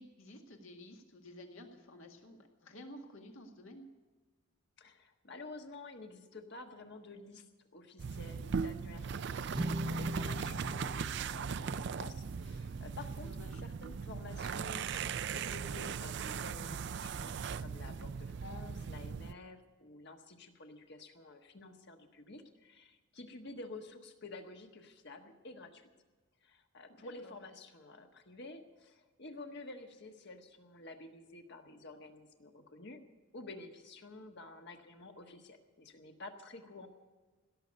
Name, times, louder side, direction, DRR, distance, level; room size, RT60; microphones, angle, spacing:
voice 1, 0.0-3.9 13.2-13.6 26.9-27.4, left 1 dB, 70° left, 3 dB, 1.9 m, -52 dB
voice 2, 4.8-7.5 7.7-13.3 13.6-25.9 26.4-33.0 33.3-36.9, left 2 dB, 50° left, 4 dB, 1.4 m, -50 dB
sound 1, 8.0-19.3, right 6 dB, 55° right, 0.4 m, -39 dB
sound 2, 9.5-16.0, equal, 20° right, 0.7 m, -43 dB
17.0 x 6.7 x 9.7 m, 1.3 s
head